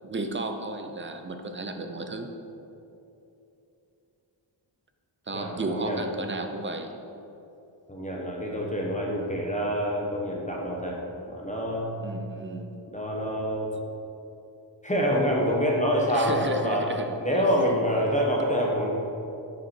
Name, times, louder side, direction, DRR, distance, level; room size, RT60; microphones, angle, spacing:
voice 1, 0.0-2.3 5.3-6.9 12.0-12.7 16.1-17.4, right 2 dB, 25° right, 6 dB, 0.5 m, -33 dB
voice 2, 5.3-6.1 7.9-11.0 11.3-11.9 12.9-13.7 14.8-16.9 17.2-18.9, equal, 15° left, -2 dB, 0.9 m, -26 dB
7.1 x 5.5 x 4.4 m, 2.8 s
wide cardioid pair, 130°, 48 cm